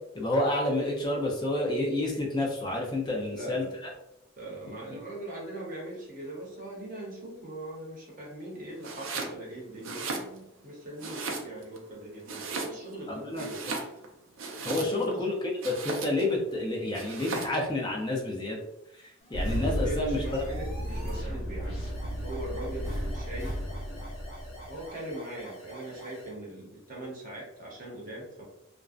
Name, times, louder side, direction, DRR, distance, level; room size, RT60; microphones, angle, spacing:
voice 1, 0.1-3.7 13.1-13.5 14.6-15.3 15.6-18.6 19.3-20.4, left 1 dB, 20° left, -2 dB, 0.4 m, -29 dB
voice 2, 3.2-3.7 4.4-13.6 14.7-15.3 19.6-21.7 22.2-23.6 24.7-28.4, right 1 dB, 40° right, -4 dB, 0.7 m, -41 dB
Domestic sounds home sounds, 8.8-9.4 9.8-10.6 11.0-11.8 12.2-13.0 13.3-15.2 15.6-16.3 16.9-17.6, right 3 dB, 70° right, 0.4 m, -36 dB
sound 1, 19.2-26.4, equal, 75° left, 1.0 m, -47 dB
Engine starting, 19.3-24.9, equal, 40° left, 0.9 m, -33 dB
2.5 x 2.1 x 2.4 m, 0.84 s
head